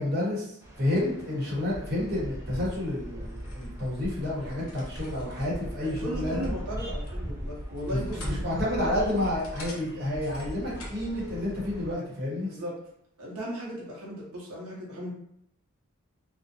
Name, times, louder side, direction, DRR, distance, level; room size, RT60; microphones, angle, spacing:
voice 1, 0.0-6.5 7.9-12.5, left 1 dB, 45° right, -5 dB, 0.8 m, -30 dB
sound 1, 0.6-12.0, equal, 15° right, 0.4 m, -38 dB
sound 2, 3.2-11.1, left 1 dB, 70° left, 0.7 m, -50 dB
voice 2, 5.8-8.4 8.8-9.0 12.4-12.8 13.2-15.1, equal, 85° right, -4 dB, 0.7 m, -37 dB
2.5 x 2.0 x 2.6 m, 0.72 s
head